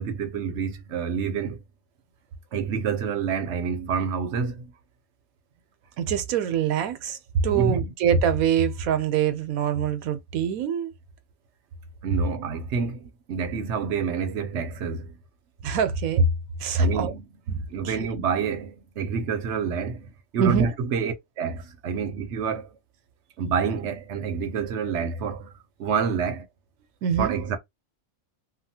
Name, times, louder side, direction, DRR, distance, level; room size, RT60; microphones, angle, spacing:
voice 1, 0.0-1.6 2.5-4.7 7.5-7.8 12.0-15.2 16.8-17.3 17.7-22.7 23.4-25.5 25.8-26.5 27.2-27.6, right 6 dB, 65° right, 0.8 m, -28 dB
voice 2, 6.0-7.2 7.4-10.9 15.6-16.3 16.6-17.1 17.5-18.1 20.4-20.7 27.0-27.4, right 6 dB, 85° right, 1.0 m, -24 dB
2.9 x 2.2 x 2.7 m
omnidirectional pair, 1.5 m